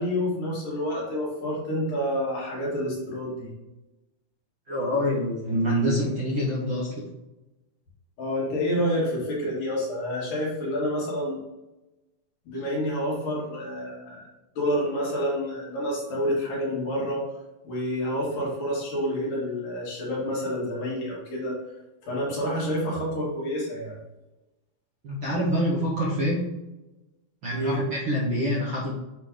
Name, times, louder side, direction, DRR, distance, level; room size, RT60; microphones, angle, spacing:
voice 1, 0.0-3.5 8.2-11.4 12.5-14.3 14.6-17.3 17.6-21.6 22.1-24.0 27.5-27.8, equal, 80° left, -5 dB, 4.0 m, -28 dB
voice 2, 4.7-6.9 25.0-26.5 27.4-28.9, equal, 55° right, -5 dB, 1.5 m, -26 dB
8.9 x 3.4 x 3.8 m, 1.0 s
omnidirectional pair, 3.8 m